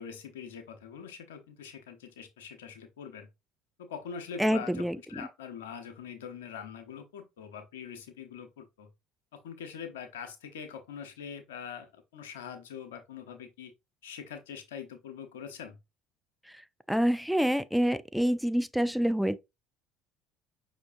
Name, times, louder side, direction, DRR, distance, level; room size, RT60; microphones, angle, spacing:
voice 1, 0.0-3.3 3.8-8.9 9.3-13.7 14.0-15.8, left 7 dB, 90° left, 0.9 m, -43 dB
voice 2, 4.4-5.0 16.9-19.4, equal, ahead, 0.4 m, -26 dB
5.6 x 3.1 x 2.5 m
hypercardioid pair, 70°, 0 cm